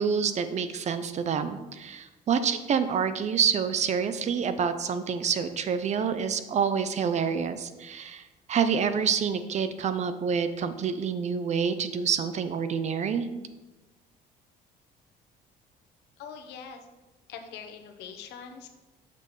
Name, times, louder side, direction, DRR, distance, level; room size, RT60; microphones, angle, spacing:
voice 1, 0.0-13.3, right 6 dB, 45° right, 11 dB, 0.6 m, -27 dB
voice 2, 16.2-16.9 17.3-18.7, left 7 dB, 85° left, 5 dB, 1.0 m, -43 dB
7.3 x 6.7 x 3.1 m, 1.1 s
cardioid pair, 110°, 17 cm